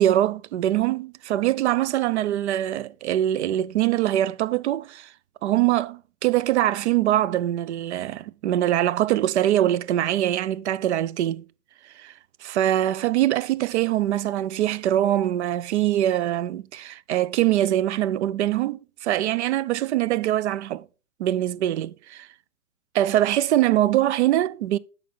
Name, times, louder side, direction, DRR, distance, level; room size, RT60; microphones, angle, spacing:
voice 1, 0.0-5.1 5.4-11.5 12.0-12.1 12.4-20.8 21.2-22.3 22.9-24.8, right 13 dB, 50° right, 0.5 m, -23 dB
8.3 x 5.2 x 4.0 m
hypercardioid pair, 120°, 44 cm